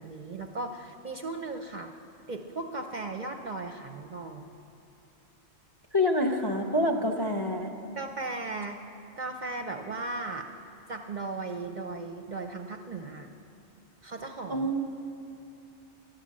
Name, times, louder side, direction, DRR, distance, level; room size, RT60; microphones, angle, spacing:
voice 1, 0.0-1.9 2.3-4.4 8.0-8.8 9.2-10.5 10.9-13.3 14.0-14.7, right 3 dB, 50° right, 5 dB, 0.6 m, -37 dB
voice 2, 5.9-7.8 14.5-14.8, left 1 dB, 30° left, 3 dB, 0.5 m, -26 dB
12.0 x 10.5 x 7.4 m, 2.7 s
omnidirectional pair, 1.2 m